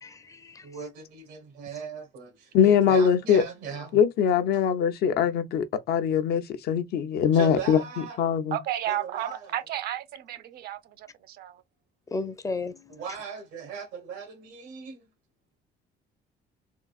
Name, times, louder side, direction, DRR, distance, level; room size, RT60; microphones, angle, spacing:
voice 1, 0.0-0.6 12.1-12.8, left 3 dB, 20° left, 0.5 m, -33 dB
voice 2, 0.6-4.0 7.3-8.2 8.9-9.6 12.9-15.1, right 5 dB, 90° right, 1.2 m, -38 dB
voice 3, 2.5-3.4 3.9-8.6, left 8 dB, 70° left, 0.6 m, -22 dB
voice 4, 8.5-11.6, right 12 dB, 65° right, 0.5 m, -33 dB
3.7 x 2.4 x 2.3 m
cardioid pair, 110°, 17 cm